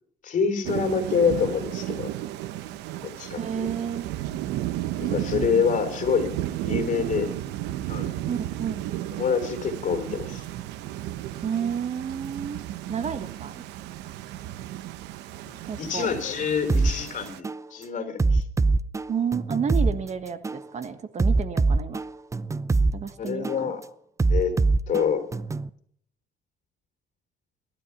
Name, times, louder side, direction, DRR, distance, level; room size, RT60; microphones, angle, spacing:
voice 1, 0.2-2.1 3.0-3.7 5.0-6.3 6.6-7.3 7.9-8.1 9.1-10.5 15.5-18.5 23.2-23.8 24.3-24.6 24.9-25.3, left 6 dB, 50° left, 7 dB, 3.5 m, -26 dB
Thunder / Rain, 0.6-17.4, right 14 dB, 90° right, 0.9 m, -33 dB
voice 2, 3.4-4.1 8.3-8.8 11.4-12.6 12.9-13.6 15.7-16.1 19.1-22.0 22.9-23.7, right 7 dB, 45° right, 9 dB, 1.6 m, -31 dB
sound 1, 16.7-16.9 17.4-17.6 18.2-19.9 20.4-20.6 21.2-22.9 23.4-23.6 24.2-25.7, right 3 dB, 20° right, 0.7 m, -22 dB
19.0 x 12.5 x 5.9 m, 0.63 s
cardioid pair, 110°, 17 cm